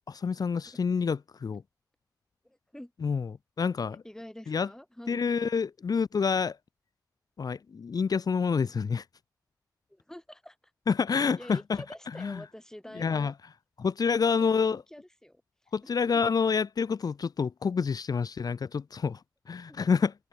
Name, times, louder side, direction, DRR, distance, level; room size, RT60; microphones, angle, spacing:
voice 1, 0.1-1.6 3.0-3.3 3.6-4.0 4.5-4.7 5.1-6.6 7.4-9.0 10.9-12.4 12.9-13.3 13.8-14.8 15.7-20.1, left 5 dB, 65° left, 1.1 m, -28 dB
voice 2, 2.4-2.9 3.9-5.2 9.9-10.6 11.4-13.3 14.1-15.4 15.8-16.2 19.7-19.8, left 1 dB, 10° left, 5.1 m, -47 dB
open air
cardioid pair, 70°, 7 cm